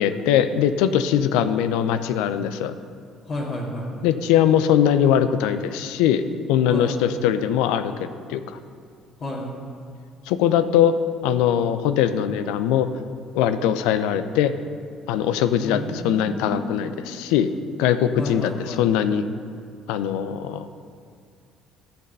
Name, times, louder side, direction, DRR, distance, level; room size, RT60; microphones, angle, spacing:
voice 1, 0.0-2.7 4.0-6.2 6.5-7.9 8.3-8.4 10.3-11.0 11.2-12.9 13.3-14.5 15.1-17.5 17.8-19.2 19.9-20.6, left 9 dB, 70° left, 11 dB, 0.6 m, -21 dB
voice 2, 3.2-3.9 6.7-7.0 9.2-9.5 15.6-17.1 18.2-18.8, left 1 dB, 55° left, -5 dB, 2.6 m, -31 dB
13.5 x 8.7 x 5.5 m, 2.3 s
hypercardioid pair, 55°, 0 cm